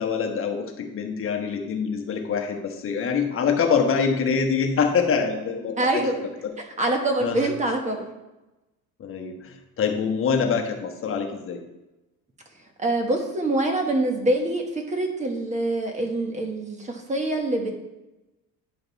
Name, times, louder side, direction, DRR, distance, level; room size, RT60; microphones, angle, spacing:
voice 1, 0.0-6.0 6.4-6.5 7.2-7.4 9.0-11.6, left 6 dB, 35° left, 3 dB, 1.1 m, -25 dB
voice 2, 5.8-6.2 6.8-8.0 12.8-17.7, right 2 dB, 20° right, 3 dB, 1.2 m, -25 dB
10.0 x 5.2 x 4.0 m, 1.0 s
cardioid pair, 150°, 36 cm